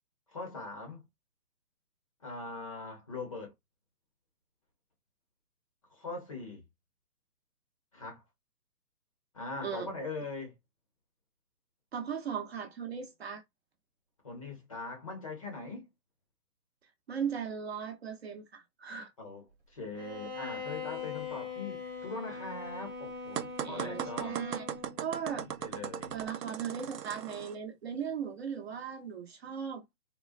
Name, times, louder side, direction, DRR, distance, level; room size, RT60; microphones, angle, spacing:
voice 1, 0.3-1.0 2.2-3.5 5.9-6.6 7.9-8.2 9.3-10.5 14.2-15.9 19.2-24.4 25.6-26.2, left 3 dB, 20° left, 0.6 m, -41 dB
voice 2, 11.9-13.4 17.1-19.1 23.6-24.7 25.0-25.5 26.1-29.8, right 7 dB, 40° right, 0.7 m, -37 dB
Bowed string instrument, 19.9-25.1, left 5 dB, 10° right, 0.9 m, -41 dB
sound 1, 23.4-27.6, right 9 dB, 90° right, 0.6 m, -38 dB
3.7 x 2.1 x 2.5 m
hypercardioid pair, 150°, 47 cm